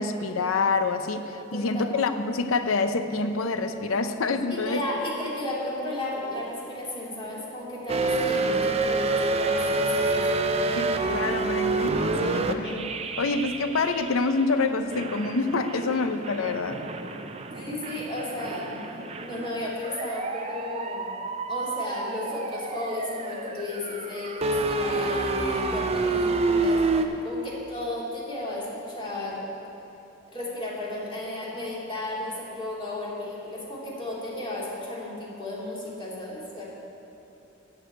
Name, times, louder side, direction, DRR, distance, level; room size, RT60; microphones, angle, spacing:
voice 1, 0.0-4.8 10.8-16.8, left 3 dB, 85° left, 8 dB, 0.6 m, -27 dB
voice 2, 4.5-10.9 17.5-18.9 19.2-21.1 21.5-29.4 30.3-36.6, left 2 dB, 25° left, -6 dB, 2.8 m, -34 dB
sound 1, 7.9-14.4 14.9-27.0, right 3 dB, 30° right, 0.5 m, -28 dB
13.0 x 4.8 x 8.9 m, 2.9 s
head